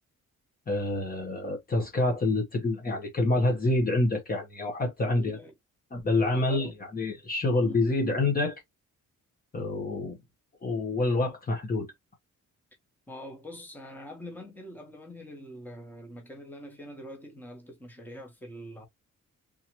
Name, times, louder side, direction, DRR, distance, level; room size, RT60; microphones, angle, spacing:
voice 1, 0.7-5.4 5.9-8.6 9.5-10.2 10.6-11.9, left 2 dB, 30° left, 0.9 m, -27 dB
voice 2, 5.0-5.5 6.3-6.7 7.6-7.8 13.1-18.8, equal, 5° left, 1.1 m, -44 dB
3.6 x 2.9 x 2.9 m
wide cardioid pair, 140°, 31 cm